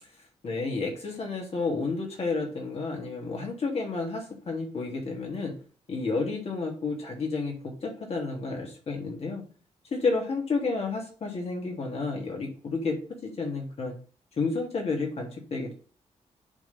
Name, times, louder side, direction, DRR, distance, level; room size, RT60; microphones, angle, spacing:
voice 1, 0.4-5.5 5.9-9.4 9.9-13.9 14.4-15.7, left 3 dB, 55° left, 0 dB, 3.1 m, -31 dB
10.5 x 3.9 x 3.6 m, 0.38 s
cardioid pair, 70°, 12 cm